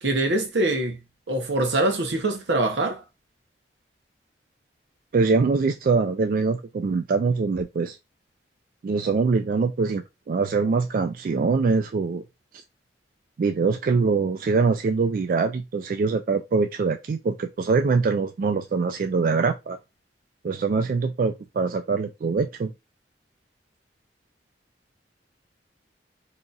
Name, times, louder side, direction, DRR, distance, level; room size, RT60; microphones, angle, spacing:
voice 1, 0.0-1.0 1.3-3.0, right 2 dB, 90° right, 0.9 m, -24 dB
voice 2, 5.1-8.0 8.8-12.2 13.4-19.8 20.4-22.7, right 4 dB, 50° right, 0.3 m, -23 dB
2.8 x 2.4 x 3.9 m
head